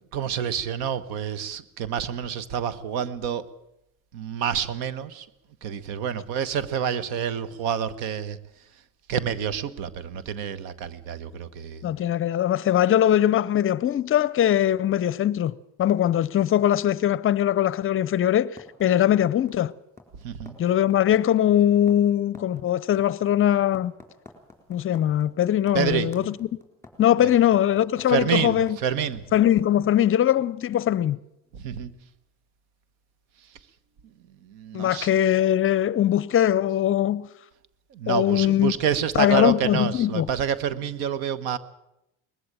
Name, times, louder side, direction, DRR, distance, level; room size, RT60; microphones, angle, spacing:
voice 1, 0.1-3.5 4.1-5.3 5.6-8.4 9.1-11.9 20.2-20.6 25.7-26.4 27.2-27.3 28.1-29.3 31.5-31.9 33.5-33.6 34.4-35.1 37.9-41.6, right 8 dB, 85° right, 1.4 m, -28 dB
voice 2, 11.8-15.5 15.8-19.7 20.6-23.9 24.7-26.3 27.0-28.8 29.3-31.2 34.7-37.3 38.1-38.7 39.2-40.3, left 11 dB, 35° left, 0.6 m, -21 dB
sound 1, 18.6-29.6, left 3 dB, 5° left, 4.1 m, -48 dB
20.0 x 15.0 x 9.0 m
cardioid pair, 130°, 36 cm